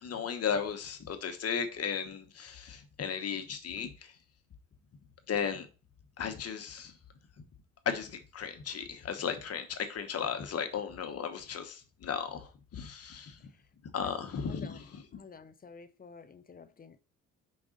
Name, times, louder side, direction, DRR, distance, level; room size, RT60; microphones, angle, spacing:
voice 1, 0.0-3.9 5.3-5.7 6.2-6.9 7.8-13.4 13.9-14.8, left 7 dB, 55° left, 1.2 m, -35 dB
voice 2, 14.4-14.8 15.1-17.0, left 5 dB, 30° left, 0.5 m, -50 dB
5.3 x 3.6 x 5.0 m
cardioid pair, 90°, 30 cm